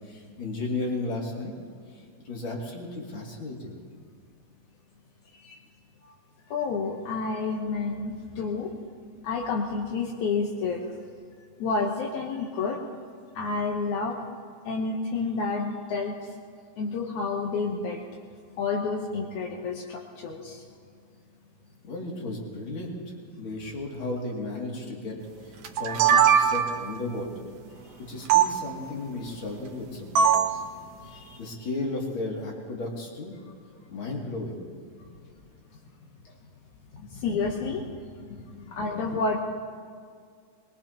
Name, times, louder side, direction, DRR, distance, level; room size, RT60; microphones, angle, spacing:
voice 1, 0.0-1.5 1.9-3.8 21.8-22.9 23.4-25.2 25.8-27.4 28.1-30.6 31.1-33.3 33.9-34.6 36.9-37.4 38.3-38.9, left 2 dB, 40° left, -2 dB, 3.1 m, -34 dB
voice 2, 6.5-8.7 9.2-10.8 11.6-12.8 13.4-14.2 14.7-16.2 16.8-18.0 18.6-20.6 31.1-31.4 37.1-37.8 38.7-39.4, left 4 dB, 75° left, 0 dB, 2.4 m, -29 dB
sound 1, 25.6-26.9 28.3-28.5 30.2-30.6, right 8 dB, 70° right, 2.2 m, -20 dB
23.0 x 21.5 x 2.9 m, 2.1 s
omnidirectional pair, 3.5 m